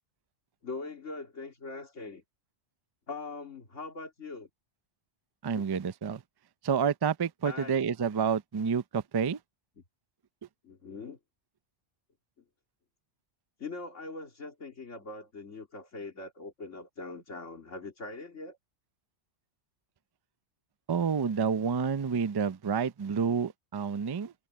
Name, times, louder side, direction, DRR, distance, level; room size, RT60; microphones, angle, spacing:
voice 1, 0.6-2.2 3.1-4.5 5.5-5.8 7.4-7.8 10.6-11.2 13.6-18.6, left 3 dB, 85° left, 3.1 m, -42 dB
voice 2, 5.4-6.2 6.6-9.4 20.9-24.3, right 6 dB, 40° right, 0.3 m, -29 dB
omnidirectional pair, 1.2 m